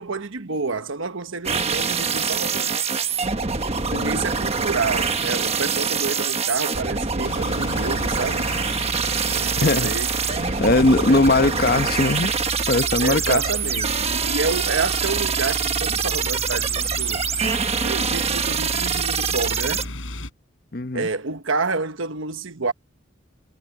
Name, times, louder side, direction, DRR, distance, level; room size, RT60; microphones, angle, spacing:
voice 1, 0.0-2.7 3.9-8.5 9.4-10.1 10.5-11.5 13.0-17.2 17.8-19.9 20.9-22.7, right 4 dB, 75° right, 1.2 m, -29 dB
sound 1, 1.4-19.8, right 5 dB, 30° right, 1.2 m, -25 dB
voice 2, 3.7-4.3 9.6-9.9 10.6-12.3 12.7-13.4 20.7-21.1, left 2 dB, 45° left, 1.0 m, -20 dB
sound 2, 7.2-20.3, left 1 dB, 75° left, 4.7 m, -33 dB
head